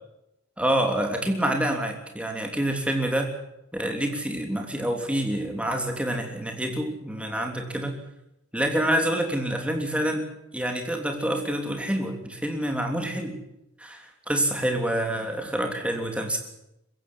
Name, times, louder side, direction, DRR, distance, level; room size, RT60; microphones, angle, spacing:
voice 1, 0.6-3.3 3.7-8.0 8.5-13.4 13.8-16.4, right 1 dB, 5° right, 3 dB, 3.2 m, -27 dB
21.5 x 16.0 x 9.5 m, 0.87 s
head